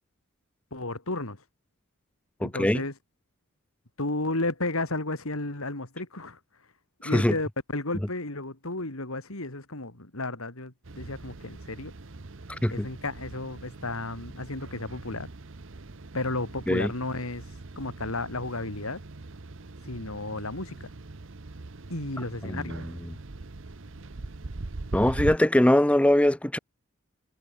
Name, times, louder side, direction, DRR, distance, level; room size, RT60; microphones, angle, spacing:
voice 1, 0.7-1.4 2.4-2.9 4.0-6.4 7.0-11.9 12.7-15.3 16.1-19.0 19.8-20.9 21.9-22.8, left 2 dB, 75° left, 3.4 m, -33 dB
voice 2, 2.4-2.8 7.0-7.3 12.5-12.9 16.7-16.9 22.5-22.9 24.9-26.6, left 1 dB, 5° left, 0.5 m, -22 dB
sound 1, 10.8-25.4, right 2 dB, 60° right, 0.9 m, -41 dB
head